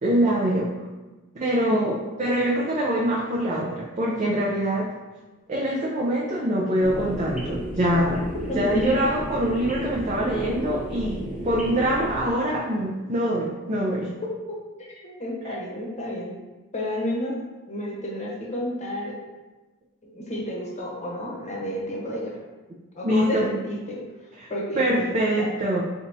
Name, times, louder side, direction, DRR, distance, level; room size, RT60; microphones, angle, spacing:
voice 1, 0.0-0.7 1.4-4.9 5.5-8.2 8.6-14.1 23.0-23.5 24.4-24.5 24.7-25.8, right 1 dB, 35° right, -4 dB, 0.5 m, -24 dB
sound 1, 6.8-12.3, right 1 dB, 5° right, 0.8 m, -33 dB
voice 2, 8.5-9.0 14.5-14.6 14.9-16.3 16.7-17.3 17.7-19.1 20.0-22.3 23.0-24.0 24.5-25.5, left 1 dB, 35° left, -3 dB, 0.9 m, -31 dB
4.0 x 3.4 x 2.6 m, 1.2 s
head